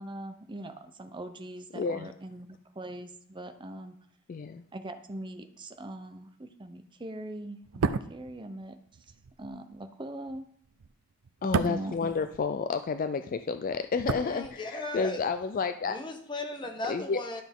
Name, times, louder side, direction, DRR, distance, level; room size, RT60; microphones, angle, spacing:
voice 1, 0.0-4.0 4.7-8.8 9.4-10.5 11.6-12.0, right 1 dB, 20° right, 8 dB, 0.6 m, -41 dB
voice 2, 1.8-2.1 4.3-4.6 11.4-16.0 16.8-17.2, left 5 dB, 40° left, 10 dB, 0.3 m, -30 dB
sound 1, 7.6-12.9 13.2-15.0 15.3-15.5, right 5 dB, 80° right, 0.5 m, -34 dB
voice 3, 14.1-15.2 15.9-17.4, left 2 dB, 20° left, 4 dB, 1.1 m, -37 dB
11.5 x 6.0 x 3.6 m, 0.64 s
head